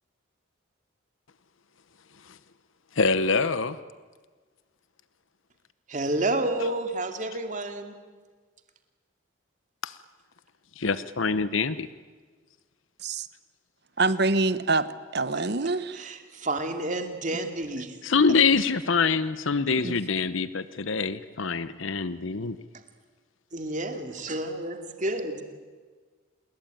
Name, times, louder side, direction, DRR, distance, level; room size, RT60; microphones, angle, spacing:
voice 1, 3.0-3.8 9.8-9.9 10.8-11.9 18.0-20.5 20.9-22.6, left 4 dB, 75° left, 14 dB, 0.9 m, -24 dB
voice 2, 5.9-8.0 15.3-18.0 23.5-25.3, right 2 dB, 40° right, 6 dB, 2.5 m, -30 dB
voice 3, 14.0-16.0 19.8-19.9, right 3 dB, 55° right, 14 dB, 1.1 m, -25 dB
28.0 x 21.5 x 9.2 m, 1.5 s
head